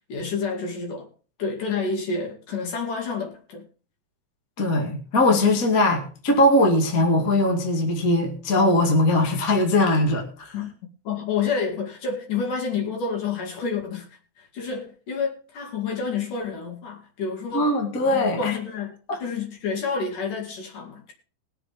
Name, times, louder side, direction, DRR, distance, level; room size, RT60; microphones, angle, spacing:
voice 1, 0.1-1.1 1.4-3.6 10.5-10.7 11.1-14.1 14.4-17.7 18.1-21.1, left 5 dB, 55° left, 3.6 m, -29 dB
voice 2, 4.6-10.5 17.5-18.6 19.1-19.2, left 1 dB, 30° left, 2.0 m, -20 dB
21.0 x 7.8 x 3.6 m
omnidirectional pair, 4.8 m